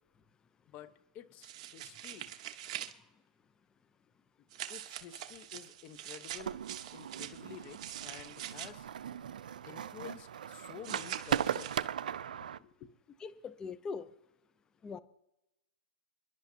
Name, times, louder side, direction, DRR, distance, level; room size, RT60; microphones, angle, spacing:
voice 1, 0.7-2.3 4.7-6.6 6.9-8.9 9.7-11.9 12.3-12.9, left 9 dB, 30° left, 12 dB, 1.0 m, -51 dB
sound 1, 1.4-2.9 4.5-8.7 10.8-11.8, right 12 dB, 50° right, 1.2 m, -44 dB
sound 2, 6.3-12.6, right 8 dB, 80° right, 0.5 m, -38 dB
voice 2, 13.2-14.1 14.8-15.0, left 5 dB, 15° left, 13 dB, 0.6 m, -41 dB
28.5 x 11.0 x 2.8 m, 0.90 s
hypercardioid pair, 135°, 4 cm